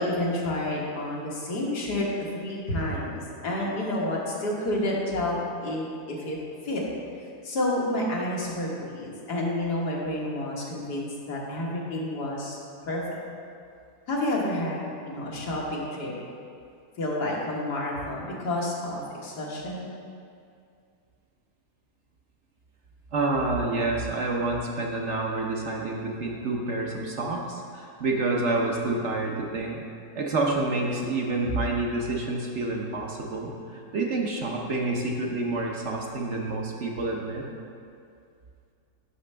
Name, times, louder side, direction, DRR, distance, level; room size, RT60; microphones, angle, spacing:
voice 1, 0.0-6.4 6.6-6.8 7.4-12.6 12.9-13.2 14.1-16.1 17.0-19.9, left 1 dB, 90° left, -4 dB, 2.0 m, -29 dB
voice 2, 23.1-29.8 30.1-37.4, right 2 dB, 55° right, -1 dB, 1.0 m, -28 dB
11.0 x 6.3 x 3.3 m, 2.4 s
omnidirectional pair, 1.7 m